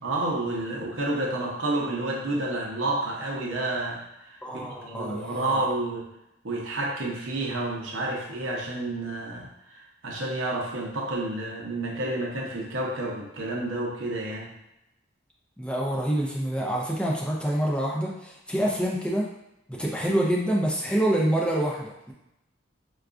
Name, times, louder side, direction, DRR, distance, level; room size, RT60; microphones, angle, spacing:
voice 1, 0.0-6.1 6.4-14.5, right 2 dB, 75° right, -2 dB, 0.7 m, -30 dB
voice 2, 4.4-5.7 15.6-19.3 19.7-22.1, right 1 dB, 5° left, -3 dB, 0.4 m, -26 dB
4.5 x 2.3 x 2.4 m, 0.85 s
head